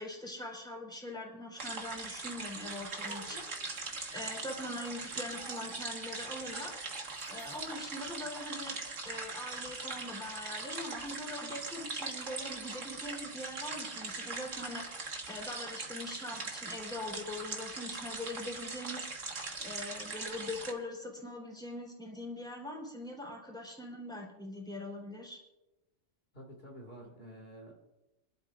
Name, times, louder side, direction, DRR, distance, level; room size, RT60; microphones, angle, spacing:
voice 1, 0.0-3.4 4.1-6.8 7.3-14.8 15.3-19.1 19.6-25.4, left 1 dB, 5° left, -1 dB, 3.6 m, -42 dB
sound 1, 1.6-20.7, right 3 dB, 80° right, 2.0 m, -41 dB
sound 2, 2.7-7.7, equal, 25° left, 6.1 m, -55 dB
voice 2, 26.3-27.7, right 1 dB, 50° left, 0 dB, 2.5 m, -49 dB
28.0 x 12.0 x 2.5 m, 1.0 s
omnidirectional pair, 1.3 m